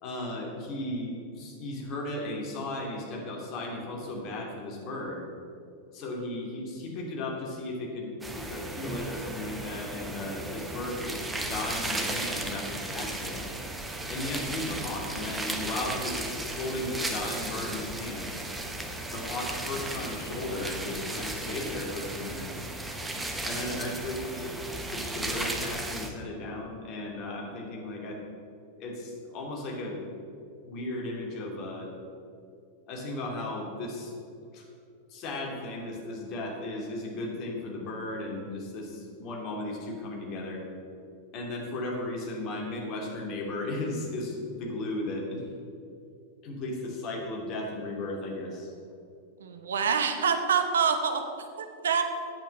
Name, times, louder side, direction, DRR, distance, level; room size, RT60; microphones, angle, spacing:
voice 1, 0.0-5.2 5.9-8.1 8.4-13.4 14.1-18.4 19.1-22.5 23.4-24.6 24.9-28.2 28.8-30.0 30.6-31.9 32.9-34.1 34.5-34.6 35.1-40.6 41.3-45.4 46.4-48.7, left 2 dB, 40° left, -1 dB, 2.8 m, -35 dB
sound 1, 8.2-26.1, right 1 dB, 10° right, 1.1 m, -35 dB
voice 2, 49.4-51.2 51.6-52.0, right 6 dB, 65° right, 7 dB, 1.0 m, -26 dB
8.9 x 8.2 x 7.4 m, 2.5 s
figure-of-eight pair, 90°, 0 cm